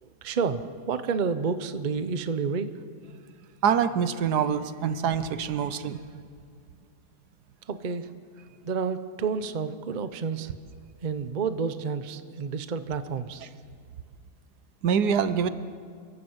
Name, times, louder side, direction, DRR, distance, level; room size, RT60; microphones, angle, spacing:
voice 1, 0.0-2.7 7.7-8.1 8.6-10.5 11.0-13.4, right 5 dB, 40° right, 11 dB, 0.7 m, -30 dB
voice 2, 3.6-6.0 14.8-15.5, right 7 dB, 75° right, 12 dB, 1.4 m, -25 dB
27.5 x 12.0 x 8.0 m, 2.1 s
omnidirectional pair, 1.7 m